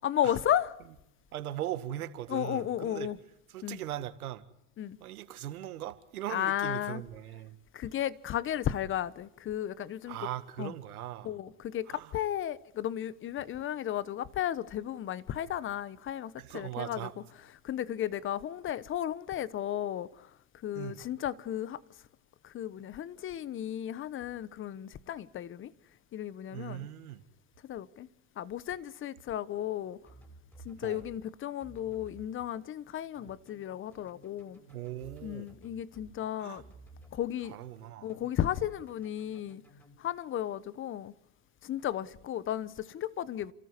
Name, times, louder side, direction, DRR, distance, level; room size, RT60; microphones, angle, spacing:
voice 1, 0.0-0.7 2.3-3.2 3.6-3.8 4.8-5.0 6.3-7.0 7.7-10.2 10.6-10.7 11.2-17.1 17.6-20.3 20.6-21.8 22.4-25.7 26.1-26.9 27.6-28.1 28.4-30.0 30.6-34.6 35.2-36.6 37.1-37.6 38.0-39.6 40.0-41.1 41.6-43.5, left 11 dB, 30° left, 1.1 m, -34 dB
voice 2, 1.3-3.1 3.5-4.5 5.0-7.6 10.1-11.3 11.9-12.1 16.4-17.1 20.7-21.0 26.5-27.2 30.8-31.1 34.7-35.6 36.4-36.6 37.4-38.1, right 13 dB, 90° right, 2.0 m, -39 dB
sound 1, 30.1-31.2 31.6-32.3 33.1-36.1 36.5-37.2 38.1-39.9, right 2 dB, 5° left, 5.9 m, -55 dB
29.5 x 14.0 x 9.7 m
supercardioid pair, 120°, 43 cm